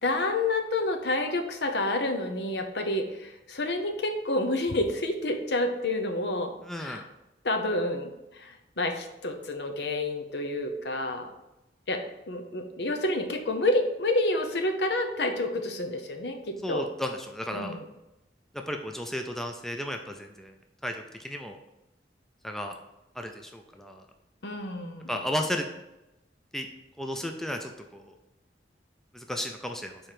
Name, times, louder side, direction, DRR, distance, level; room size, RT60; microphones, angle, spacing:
voice 1, 0.0-6.5 6.8-7.0 7.4-11.3 11.9-16.8 17.5-17.9 24.4-25.2, left 2 dB, 65° left, 5 dB, 0.8 m, -29 dB
voice 2, 6.6-7.0 16.6-17.7 18.5-20.5 20.8-21.6 22.4-22.7 23.2-24.0 25.1-25.6 26.5-26.7 27.0-28.1 29.1-30.0, left 1 dB, ahead, 3 dB, 0.4 m, -34 dB
5.1 x 4.4 x 5.7 m, 0.94 s
head